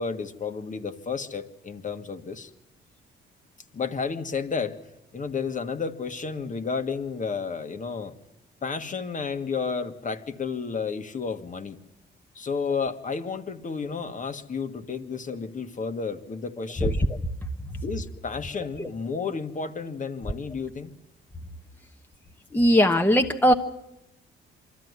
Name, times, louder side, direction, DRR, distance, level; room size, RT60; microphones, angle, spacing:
voice 1, 0.0-2.5 3.7-4.8 5.1-8.2 8.6-11.8 12.3-17.0 17.8-20.9, left 5 dB, 40° left, 7 dB, 1.7 m, -32 dB
voice 2, 16.8-17.2 18.8-18.9 22.5-23.5, equal, 10° left, 4 dB, 1.2 m, -20 dB
24.5 x 14.0 x 9.7 m, 0.90 s
cardioid pair, 90°, 20 cm